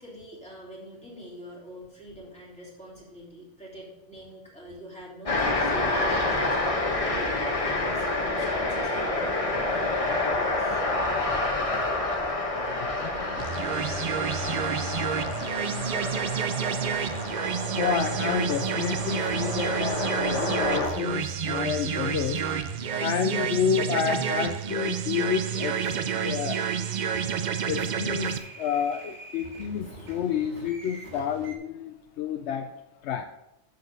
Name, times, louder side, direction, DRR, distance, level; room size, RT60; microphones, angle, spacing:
voice 1, 0.0-10.8 31.8-32.2, equal, 5° left, -6 dB, 3.4 m, -45 dB
sound 1, 5.2-20.9, left 2 dB, 30° left, 1.2 m, -28 dB
voice 2, 12.7-22.7 22.9-25.8 26.2-26.6 27.7-32.7 33.0-33.2, left 8 dB, 90° left, 6 dB, 0.9 m, -31 dB
sound 2, 13.4-28.4, right 7 dB, 55° right, 0.6 m, -29 dB
sound 3, 25.4-31.6, right 1 dB, 70° right, 2.1 m, -46 dB
8.1 x 6.9 x 5.2 m, 0.90 s
omnidirectional pair, 1.1 m